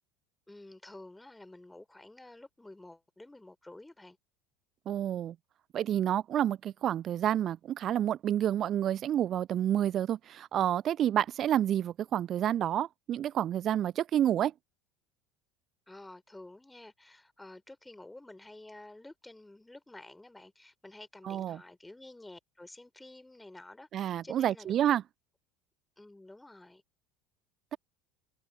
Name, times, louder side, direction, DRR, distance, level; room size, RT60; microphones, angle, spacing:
voice 1, 0.5-4.2 15.9-24.7 26.0-26.8, left 2 dB, 10° left, 3.8 m, -51 dB
voice 2, 4.9-5.3 5.7-14.5 21.2-21.6 23.9-25.0, right 11 dB, 40° right, 0.6 m, -29 dB
figure-of-eight pair, 70°, 0 cm